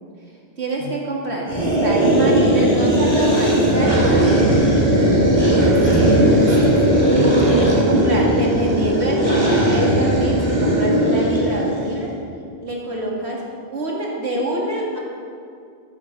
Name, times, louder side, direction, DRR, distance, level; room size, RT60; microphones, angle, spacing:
voice 1, 0.6-1.5 1.8-4.7 7.5-12.1 12.6-13.4 13.7-15.0, right 1 dB, 80° right, -2 dB, 2.5 m, -25 dB
sound 1, 1.5-12.0, right 1 dB, 30° right, 2.3 m, -17 dB
voice 2, 5.5-6.9 7.1-7.6, right 5 dB, 55° right, 3 dB, 1.0 m, -30 dB
14.5 x 7.0 x 6.6 m, 2.3 s
omnidirectional pair, 1.1 m